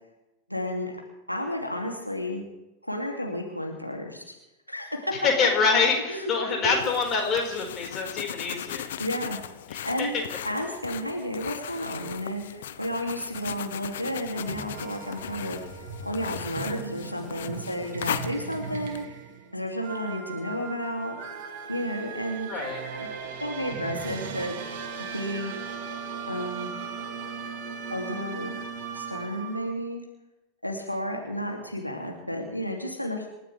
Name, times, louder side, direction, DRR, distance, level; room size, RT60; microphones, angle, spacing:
voice 1, 0.5-0.9 1.3-2.4 2.8-4.2 4.7-5.3 6.1-6.3 6.8-6.9 9.0-9.4 9.8-19.1 19.5-21.2 21.7-22.6 23.0-23.1 23.4-24.5 25.0-25.5 26.3-26.7 27.9-28.6 28.9-30.0 30.6-33.3, equal, 90° left, 0 dB, 2.6 m, -32 dB
voice 2, 5.2-8.9 9.7-10.1 22.5-22.8, left 5 dB, 30° left, 1 dB, 4.9 m, -25 dB
sound 1, 6.6-19.1, left 10 dB, 60° left, 0.9 m, -38 dB
sound 2, 14.3-29.7, right 6 dB, 50° right, 2.5 m, -38 dB
28.0 x 14.5 x 3.4 m, 0.95 s
figure-of-eight pair, 90°, 0 cm